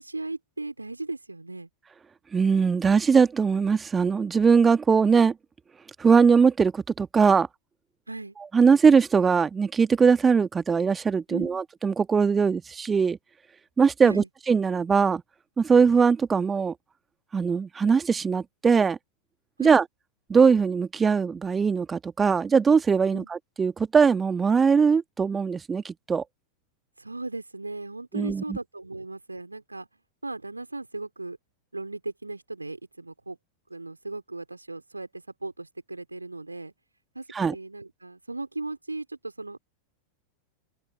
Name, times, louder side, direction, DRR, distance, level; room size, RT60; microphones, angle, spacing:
voice 1, 0.0-1.7 8.1-8.4 11.3-11.5 14.0-14.3 19.6-19.8 23.1-23.3 27.0-29.9 30.2-31.4 31.7-33.4 33.7-36.7 37.1-39.6, right 2 dB, 80° right, 3.3 m, -37 dB
voice 2, 2.3-5.3 6.0-7.5 8.5-13.2 13.8-15.2 15.6-16.7 17.3-19.0 19.6-19.8 20.3-26.2 28.1-28.6 37.3-37.5, right 5 dB, 15° right, 1.7 m, -21 dB
figure-of-eight pair, 90°, 0 cm